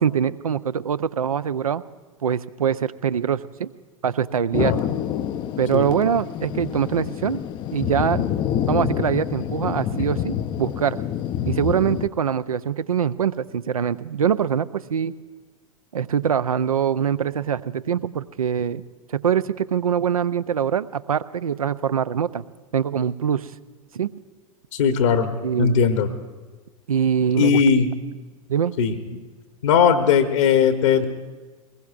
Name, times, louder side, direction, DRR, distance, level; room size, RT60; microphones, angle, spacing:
voice 1, 0.0-1.8 2.2-3.7 4.0-4.7 5.6-7.4 7.7-8.3 8.7-11.0 11.4-15.1 15.9-18.8 19.1-22.4 22.7-23.5 23.9-24.1 25.4-25.8 26.9-27.6 28.5-28.7, right 8 dB, 75° right, 15 dB, 0.5 m, -23 dB
Thunder, 4.5-12.1, left 10 dB, 25° left, 0.5 m, -27 dB
voice 2, 24.7-25.3 25.6-26.1 27.4-27.9 28.8-29.0 29.6-31.1, left 6 dB, 60° left, 6 dB, 1.1 m, -18 dB
22.0 x 20.5 x 2.5 m, 1.3 s
figure-of-eight pair, 90°, 18 cm